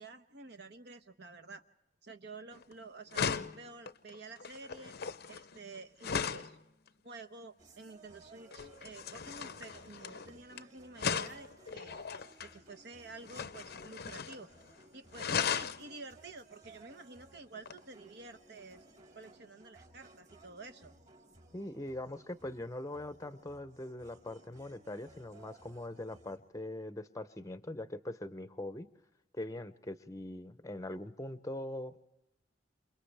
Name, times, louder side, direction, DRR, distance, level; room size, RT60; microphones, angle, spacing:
voice 1, 0.0-1.6 2.0-5.0 5.3-6.6 7.0-11.9 12.4-14.5 14.9-18.8 19.1-20.9, right 3 dB, 60° right, 8 dB, 1.0 m, -50 dB
sound 1, 2.5-2.7 3.1-6.5 8.5-10.6 11.0-12.5 13.2-14.4 14.7-14.8 15.1-15.8 17.7-17.8, left 6 dB, 55° left, 0.7 m, -37 dB
sound 2, 7.6-26.4, right 2 dB, 40° right, 5.1 m, -60 dB
voice 2, 21.5-28.9 29.3-32.0, left 1 dB, 15° left, 11 dB, 0.7 m, -42 dB
29.0 x 28.0 x 3.4 m, 0.94 s
head